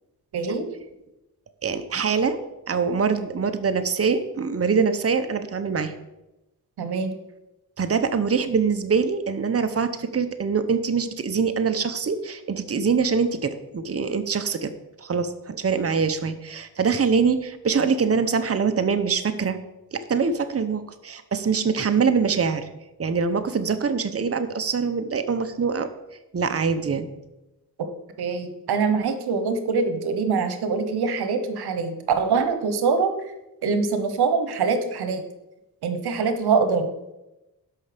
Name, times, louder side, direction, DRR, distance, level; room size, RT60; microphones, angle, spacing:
voice 1, 0.3-0.6 6.8-7.1 28.2-33.1 33.6-35.2 35.8-36.9, right 5 dB, 90° right, 8 dB, 1.1 m, -24 dB
voice 2, 1.6-2.4 2.7-5.9 7.8-14.7 15.0-19.6 19.9-22.7 23.0-25.9 26.3-27.1, right 5 dB, 40° right, 9 dB, 1.0 m, -24 dB
13.0 x 5.6 x 5.1 m, 0.96 s
cardioid pair, 60°, 37 cm